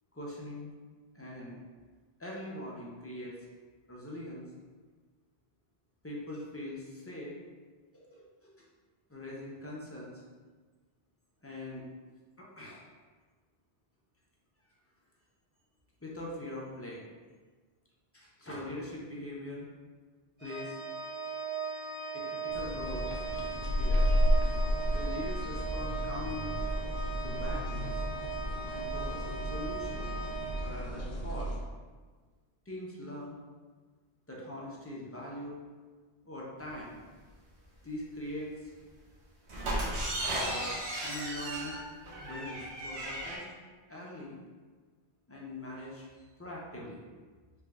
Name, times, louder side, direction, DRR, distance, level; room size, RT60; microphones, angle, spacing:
voice 1, 0.1-0.7 1.1-1.6 2.2-3.3 3.9-4.4 6.0-7.4 7.9-8.5 9.1-10.2 11.4-11.8 12.4-12.8 16.0-17.0 18.1-19.7 20.4-20.8 22.1-23.1 23.7-24.3 24.9-26.6 27.2-28.0 28.7-30.1 30.6-31.5 32.7-33.4 34.3-35.6 36.2-37.0 37.8-38.7 40.3-41.8 42.2-43.4 43.9-44.4 45.3-46.1 46.4-47.0, left 1 dB, 25° left, -5 dB, 0.3 m, -42 dB
Organ, 20.4-31.3, right 4 dB, 40° right, 1.1 m, -39 dB
sound 1, 22.5-31.6, equal, 70° left, 0.8 m, -32 dB
sound 2, 39.5-43.4, right 1 dB, 85° right, 1.1 m, -35 dB
3.3 x 2.5 x 3.4 m, 1.4 s
omnidirectional pair, 1.1 m